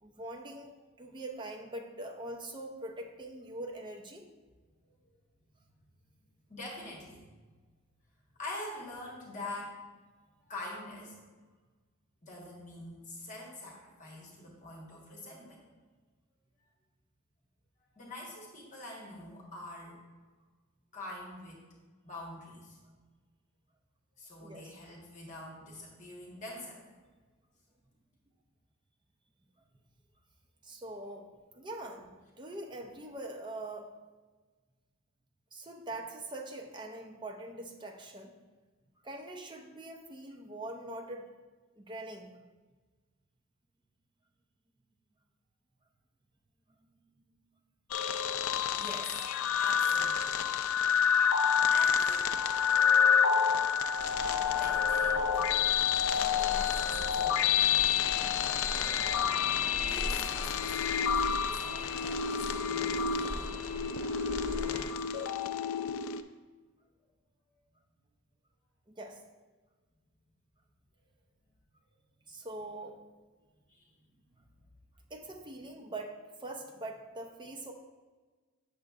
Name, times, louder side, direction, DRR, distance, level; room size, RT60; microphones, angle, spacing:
voice 1, 0.0-4.3 24.4-24.7 30.6-33.9 35.5-38.4 39.0-41.3 41.8-42.3 46.8-46.9 64.0-64.1 64.8-64.9 68.9-69.2 72.3-73.0 74.3-74.4 75.1-77.7, right 1 dB, 20° right, 2 dB, 0.6 m, -43 dB
voice 2, 6.5-7.3 8.4-9.8 10.4-11.2 12.2-15.7 17.8-20.0 20.9-21.7 22.0-22.8 24.2-26.8 48.7-49.2 49.6-50.2 50.8-51.2 51.7-52.3 54.5-55.5 56.1-58.3 59.8-63.6 73.7-73.9, left 2 dB, 35° left, -3 dB, 1.3 m, -45 dB
sound 1, 47.9-66.2, left 7 dB, 70° left, 0.3 m, -28 dB
sound 2, 54.0-64.9, equal, 80° right, 1.4 m, -42 dB
7.6 x 6.4 x 2.4 m, 1.3 s
head